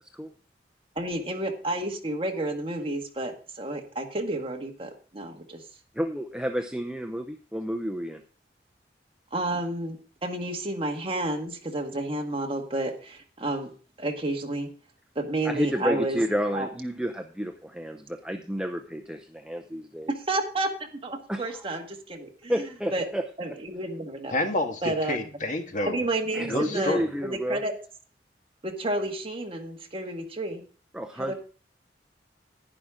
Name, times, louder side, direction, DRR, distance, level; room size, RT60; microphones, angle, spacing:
voice 1, 0.9-5.6 9.3-13.7 14.0-14.7 15.1-16.2 16.5-16.7 20.1-22.5 22.9-23.0 23.4-24.3 24.8-25.2 25.9-27.7 28.6-30.6 31.2-31.3, right 1 dB, 30° right, 3 dB, 1.7 m, -31 dB
voice 2, 5.9-8.2 15.4-20.1 21.3-21.6 22.5-23.2 26.3-27.6 30.9-31.3, equal, 5° right, 5 dB, 0.7 m, -30 dB
voice 3, 24.3-26.0 26.5-27.1, left 1 dB, 45° left, 4 dB, 1.7 m, -29 dB
11.0 x 11.0 x 3.7 m, 0.39 s
head